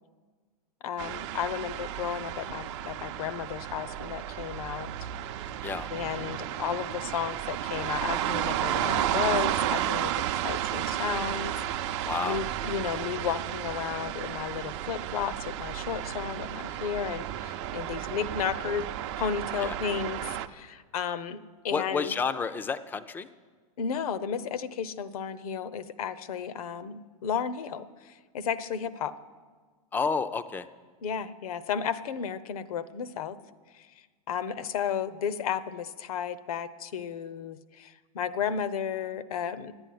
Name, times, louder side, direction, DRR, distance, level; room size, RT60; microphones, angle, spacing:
voice 1, 0.8-4.9 5.9-18.9 19.2-21.4 21.6-22.1 23.8-29.1 31.0-33.4 34.3-39.7, left 8 dB, 75° left, 15 dB, 0.8 m, -33 dB
sound 1, 1.0-20.5, right 12 dB, 50° right, 0.6 m, -32 dB
voice 2, 12.1-12.4 19.6-19.7 21.7-23.3 29.9-30.7, left 5 dB, 10° left, 12 dB, 0.4 m, -30 dB
11.0 x 8.9 x 9.4 m, 1.5 s
supercardioid pair, 145°, 19 cm